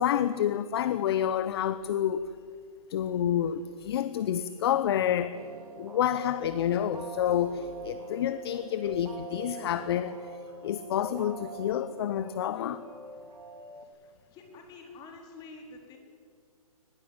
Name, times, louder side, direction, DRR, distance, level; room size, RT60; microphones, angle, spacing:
voice 1, 0.0-2.3 2.9-5.4 5.8-12.9, left 10 dB, 45° left, 0.9 m, -29 dB
sound 1, 5.3-13.8, right 2 dB, 90° right, 3.4 m, -44 dB
Keyboard (musical), 7.2-10.2, left 4 dB, 90° left, 7.7 m, -54 dB
voice 2, 13.8-16.0, left 3 dB, 20° left, 4.2 m, -48 dB
22.5 x 20.5 x 8.9 m
hypercardioid pair, 145°, 19 cm